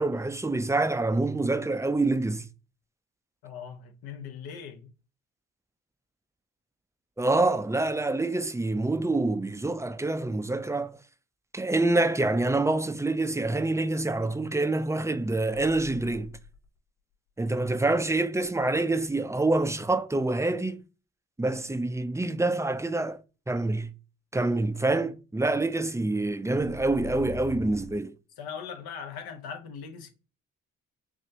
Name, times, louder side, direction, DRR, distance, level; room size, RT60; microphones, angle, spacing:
voice 1, 0.0-2.5 7.2-11.0 11.5-16.3 17.4-20.8 21.4-23.2 23.5-23.9 24.3-28.1, right 2 dB, 10° right, 0.4 m, -26 dB
voice 2, 3.4-4.9 17.6-17.7 28.4-30.1, left 7 dB, 75° left, 1.0 m, -40 dB
sound 1, 15.5-16.8 18.4-19.3 26.3-28.0, left 4 dB, 50° left, 2.4 m, -43 dB
6.1 x 2.4 x 2.8 m
hypercardioid pair, 45°, 37 cm